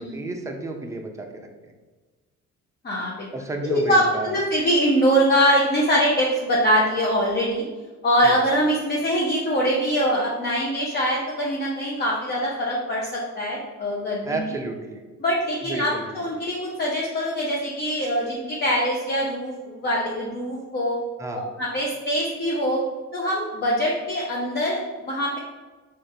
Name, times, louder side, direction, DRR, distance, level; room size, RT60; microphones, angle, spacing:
voice 1, 0.0-1.7 3.3-4.4 8.2-8.4 14.3-15.0 15.6-16.2 21.2-21.4, right 2 dB, 10° right, 2 dB, 0.5 m, -32 dB
voice 2, 2.8-3.3 3.6-7.6 8.0-14.4 15.2-21.0 21.6-22.8 23.1-25.4, equal, 35° left, -4 dB, 0.6 m, -23 dB
3.6 x 2.5 x 2.6 m, 1.3 s
cardioid pair, 90°, 30 cm